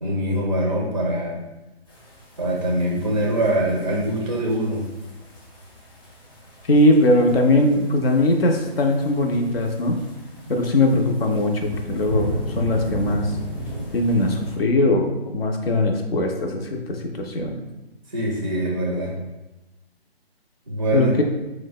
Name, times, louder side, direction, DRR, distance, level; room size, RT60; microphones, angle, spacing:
voice 1, 0.0-1.4 2.4-4.8 10.4-10.5 18.1-19.2 20.7-21.1, right 1 dB, 35° right, -3 dB, 0.4 m, -23 dB
sound 1, 1.9-14.6, equal, 20° left, 0.7 m, -35 dB
voice 2, 6.7-10.0 10.5-12.3 12.6-13.3 13.9-16.8 17.1-17.6 20.9-21.2, left 1 dB, 65° left, 3 dB, 0.5 m, -20 dB
4.4 x 2.1 x 2.2 m, 1.0 s
figure-of-eight pair, 155°, 32 cm